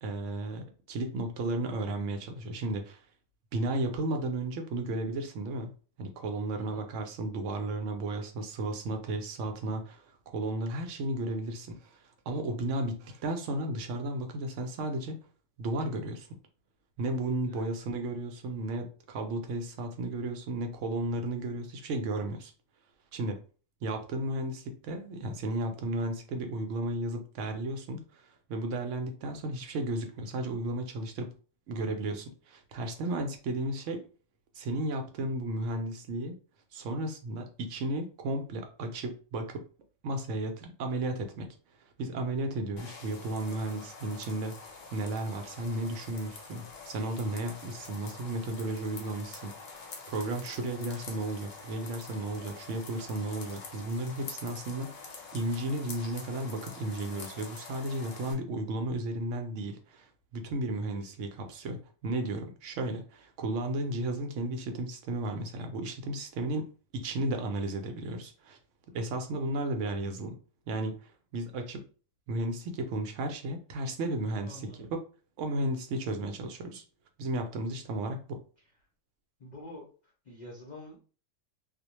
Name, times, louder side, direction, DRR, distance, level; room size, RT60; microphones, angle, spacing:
voice 1, 0.0-3.0 3.5-5.7 6.0-12.0 12.3-15.2 15.6-16.3 17.0-22.5 23.1-23.4 23.8-28.2 28.5-31.3 31.7-34.0 34.5-36.4 36.7-39.6 40.0-41.5 42.0-66.7 66.9-68.6 68.9-70.4 70.7-71.9 72.3-75.0 75.4-76.8 77.2-78.4, right 2 dB, 75° right, 5 dB, 0.9 m, -34 dB
sound 1, 42.8-58.3, left 4 dB, 80° left, 1.1 m, -46 dB
voice 2, 74.4-74.8 79.4-79.8 80.3-81.0, left 1 dB, 45° left, -3 dB, 0.6 m, -46 dB
2.4 x 2.1 x 2.9 m, 0.38 s
omnidirectional pair, 1.3 m